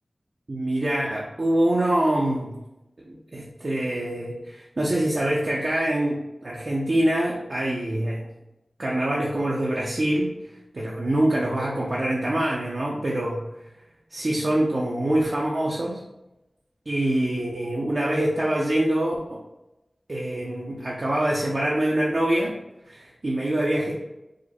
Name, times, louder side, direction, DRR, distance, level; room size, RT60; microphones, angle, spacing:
voice 1, 0.5-2.6 3.0-8.3 8.8-10.3 10.7-13.4 14.1-16.0 16.9-19.4 20.1-22.6 22.9-23.9, right 1 dB, 55° right, -4 dB, 0.7 m, -25 dB
5.1 x 2.2 x 4.2 m, 0.93 s
wide cardioid pair, 80°, 0 cm